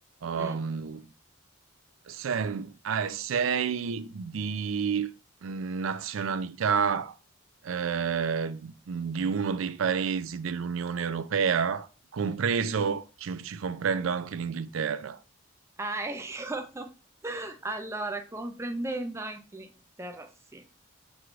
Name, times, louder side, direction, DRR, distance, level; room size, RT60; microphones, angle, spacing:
voice 1, 0.2-1.1 2.1-5.1 5.4-7.1 7.6-11.9 12.1-15.2, right 6 dB, 75° right, 0.4 m, -29 dB
voice 2, 15.8-16.9 17.2-19.7 20.0-20.6, right 2 dB, 15° right, 0.4 m, -35 dB
6.1 x 3.1 x 2.5 m
head